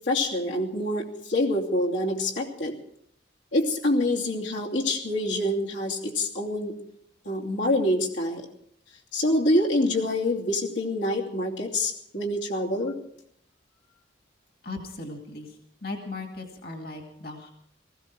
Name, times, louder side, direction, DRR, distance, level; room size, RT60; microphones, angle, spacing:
voice 1, 0.1-2.7 3.5-6.7 7.2-8.5 9.1-12.9, left 1 dB, 90° left, -2 dB, 2.8 m, -26 dB
voice 2, 14.6-15.6 15.8-17.5, left 2 dB, 55° left, 3 dB, 2.2 m, -37 dB
19.0 x 15.5 x 4.6 m, 0.68 s
head